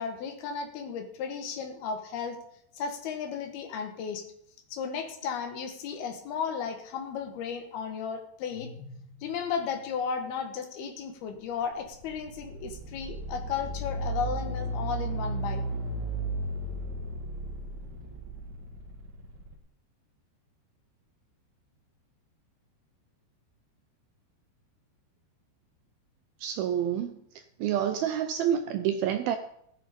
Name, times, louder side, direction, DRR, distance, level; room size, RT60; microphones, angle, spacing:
voice 1, 0.0-2.4 2.7-4.3 4.7-15.6, left 6 dB, 65° left, 5 dB, 3.3 m, -34 dB
Propeller movement, 11.5-19.5, right 2 dB, 50° right, 2.7 m, -35 dB
voice 2, 26.4-27.2 27.6-29.4, right 9 dB, 80° right, 8 dB, 2.2 m, -28 dB
16.0 x 10.0 x 5.3 m, 0.72 s
omnidirectional pair, 5.0 m